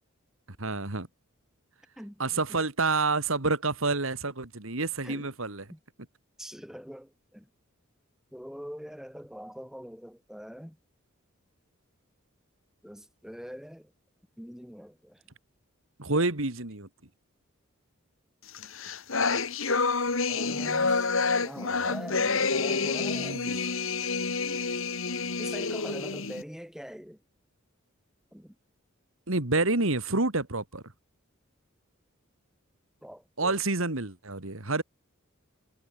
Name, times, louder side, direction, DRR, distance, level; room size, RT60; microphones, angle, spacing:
voice 1, 0.6-1.1 2.2-5.7 16.0-16.9 23.0-23.5 29.3-30.8 33.4-34.8, right 3 dB, 70° right, 2.6 m, -28 dB
voice 2, 2.0-2.6 5.0-5.3 5.7-5.8 6.4-7.5 8.3-10.8 12.8-13.9 14.4-15.2 20.3-23.4 25.4-27.2 28.3-28.6 33.0-33.6, equal, ahead, 7.8 m, -43 dB
sound 1, 18.5-26.4, left 4 dB, 70° left, 2.3 m, -28 dB
head